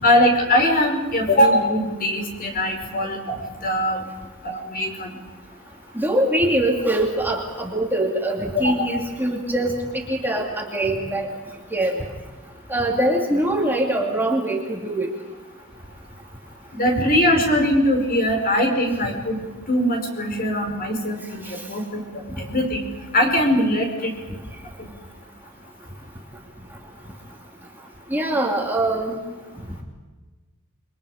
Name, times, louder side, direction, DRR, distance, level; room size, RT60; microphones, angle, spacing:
voice 1, 0.0-4.0 4.4-5.2 8.6-8.9 16.7-19.4 19.7-22.9 23.1-24.2 24.8-24.9, equal, 45° left, 2 dB, 5.4 m, -21 dB
voice 2, 5.9-9.7 10.1-11.3 11.7-11.9 12.7-15.1 28.1-29.2, right 1 dB, 10° right, -1 dB, 2.8 m, -23 dB
29.0 x 23.5 x 5.1 m, 1.3 s
head